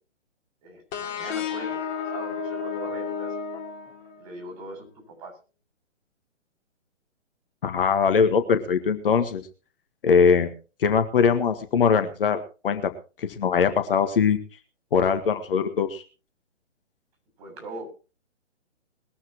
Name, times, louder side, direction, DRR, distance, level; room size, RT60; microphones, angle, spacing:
voice 1, 0.6-3.3 4.2-5.3 17.4-17.9, right 2 dB, 30° right, 2 dB, 7.7 m, -41 dB
sound 1, 0.9-4.4, left 6 dB, 25° left, 3.0 m, -32 dB
voice 2, 7.6-9.4 10.0-10.5 10.8-12.9 13.2-14.4 14.9-16.0, left 6 dB, 50° left, 8 dB, 1.7 m, -21 dB
21.0 x 14.0 x 3.1 m, 0.35 s
figure-of-eight pair, 130°, 36 cm